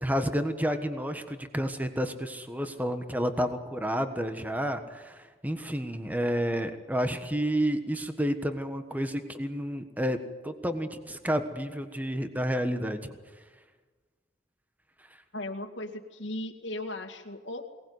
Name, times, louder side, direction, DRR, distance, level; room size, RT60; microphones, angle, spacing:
voice 1, 0.0-10.2 10.4-13.0, equal, 10° right, 8 dB, 1.4 m, -30 dB
voice 2, 15.3-17.7, left 1 dB, 70° left, 4 dB, 2.2 m, -37 dB
23.0 x 19.0 x 9.6 m, 1.4 s
head